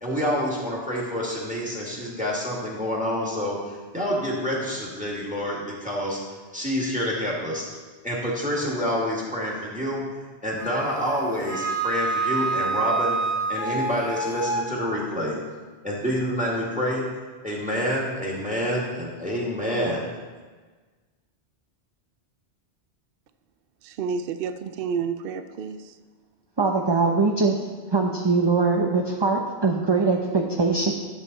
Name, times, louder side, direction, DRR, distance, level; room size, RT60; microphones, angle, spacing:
voice 1, 0.0-6.2 6.5-7.6 8.0-10.0 10.4-13.2 13.5-15.4 15.8-17.1 17.4-20.1, equal, 5° right, -3 dB, 2.0 m, -27 dB
Wind instrument woodwind instrument, 10.6-14.7, right 3 dB, 80° left, 1.9 m, -27 dB
voice 2, 23.8-26.0, right 6 dB, 60° right, 9 dB, 0.7 m, -30 dB
voice 3, 26.6-27.6 27.9-30.9, right 4 dB, 30° right, 1 dB, 0.6 m, -22 dB
12.0 x 7.8 x 4.0 m, 1.4 s
omnidirectional pair, 1.1 m